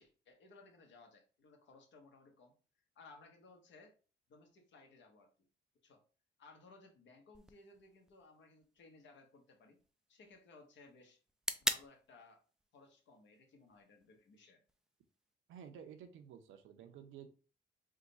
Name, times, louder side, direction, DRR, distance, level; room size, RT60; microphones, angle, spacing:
voice 1, 0.0-2.5 2.9-3.9 4.3-5.3 5.8-6.0 6.4-9.8 10.1-11.2 11.6-12.4 12.7-14.6, left 3 dB, 70° left, 3 dB, 1.1 m, -61 dB
sound 1, 7.3-15.3, right 1 dB, 5° right, 0.4 m, -46 dB
voice 2, 15.5-17.3, right 8 dB, 85° right, 6 dB, 0.7 m, -52 dB
3.6 x 2.3 x 4.0 m, 0.37 s
cardioid pair, 90°, 20 cm